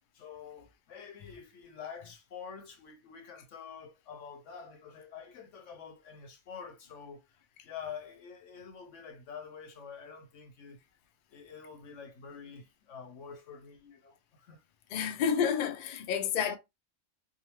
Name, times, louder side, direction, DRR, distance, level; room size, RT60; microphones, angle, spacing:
voice 1, 0.1-7.2 7.6-10.8 11.3-14.6, left 6 dB, 85° left, 1.1 m, -47 dB
voice 2, 14.9-16.6, left 7 dB, 60° left, 0.5 m, -29 dB
2.6 x 2.4 x 3.0 m
omnidirectional pair, 1.3 m